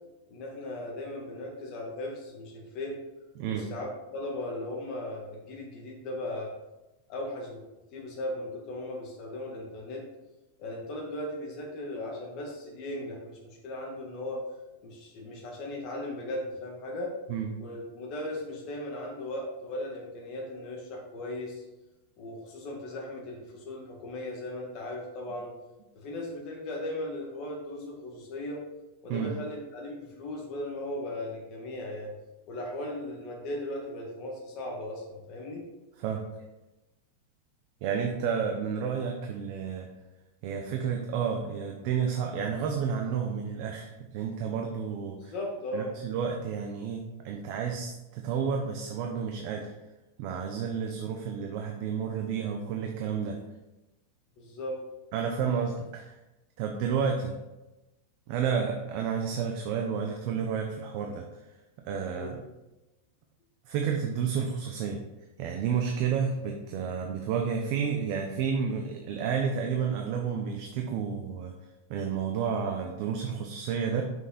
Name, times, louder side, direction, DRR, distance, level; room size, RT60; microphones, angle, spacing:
voice 1, 0.3-3.0 3.5-3.9 4.1-6.5 7.1-7.6 7.9-10.0 10.6-14.5 14.8-17.1 17.6-21.6 22.2-25.5 25.9-28.6 29.0-32.1 32.5-35.6 45.2-45.9 54.4-54.8 62.1-62.4, left 1 dB, 30° left, -1 dB, 1.8 m, -37 dB
voice 2, 3.4-3.7 17.3-17.5 29.1-29.3 36.0-36.5 37.8-39.9 40.4-45.3 45.7-49.7 50.2-53.4 55.1-56.2 56.6-57.4 58.3-61.4 61.8-62.4 63.7-65.0 65.4-71.5 71.9-74.0, right 6 dB, 40° right, 2 dB, 0.7 m, -31 dB
6.0 x 5.6 x 4.2 m, 1.0 s
supercardioid pair, 175°, 0 cm